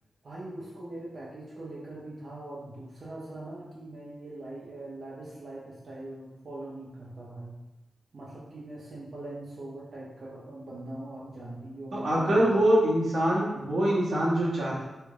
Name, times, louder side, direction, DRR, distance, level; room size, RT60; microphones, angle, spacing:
voice 1, 0.2-7.5 8.1-12.5, right 1 dB, 60° right, -7 dB, 0.7 m, -41 dB
voice 2, 11.9-14.8, right 1 dB, 80° right, -6 dB, 1.0 m, -24 dB
3.2 x 3.2 x 2.4 m, 1.0 s
cardioid pair, 60°, 0 cm